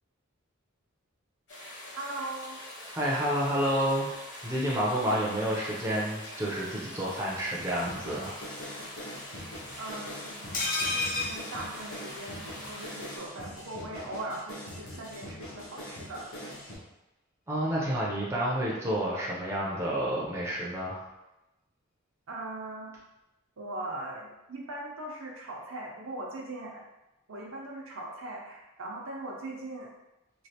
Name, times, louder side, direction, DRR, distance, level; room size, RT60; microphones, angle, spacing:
sound 1, 1.5-13.2, left 1 dB, 55° left, 1.1 m, -44 dB
voice 1, 2.0-2.6 9.8-10.4 10.8-16.3 22.3-23.0 23.6-26.8 27.3-29.9, right 2 dB, 70° right, -2 dB, 0.7 m, -40 dB
voice 2, 3.0-4.1 4.4-8.3 17.5-21.0, equal, 15° right, -5 dB, 0.5 m, -29 dB
sound 2, 7.6-16.8, equal, 85° left, 0.9 m, -43 dB
sound 3, 10.5-12.5 12.8-12.9 13.2-13.3, left 3 dB, 40° left, 0.6 m, -32 dB
3.1 x 2.4 x 2.8 m, 0.96 s
head